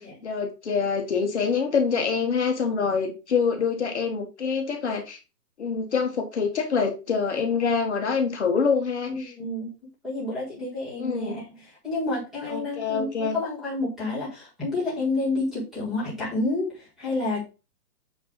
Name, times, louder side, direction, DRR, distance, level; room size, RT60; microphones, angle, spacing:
voice 1, 0.2-5.2 5.6-9.3 11.0-11.4 12.5-13.4, left 5 dB, 45° left, 3 dB, 1.3 m, -25 dB
voice 2, 9.1-9.7 10.0-17.4, left 2 dB, ahead, -6 dB, 1.7 m, -29 dB
8.4 x 2.9 x 5.2 m, 0.30 s
hypercardioid pair, 175°, 47 cm